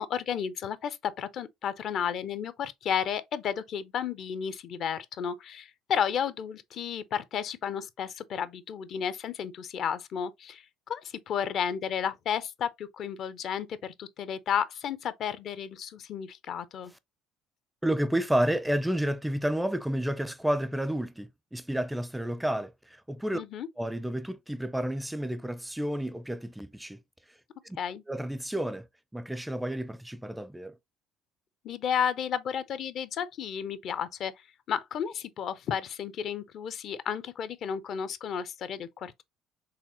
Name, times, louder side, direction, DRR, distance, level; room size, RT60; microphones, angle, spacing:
voice 1, 0.0-16.9 23.3-23.7 27.8-28.0 31.6-34.3 34.7-39.2, left 8 dB, 50° left, 0.5 m, -32 dB
voice 2, 17.8-23.4 23.8-27.0 27.6-27.8 28.1-28.9 29.1-30.7, right 1 dB, 5° right, 0.4 m, -30 dB
4.9 x 3.4 x 2.8 m
figure-of-eight pair, 60°, 0 cm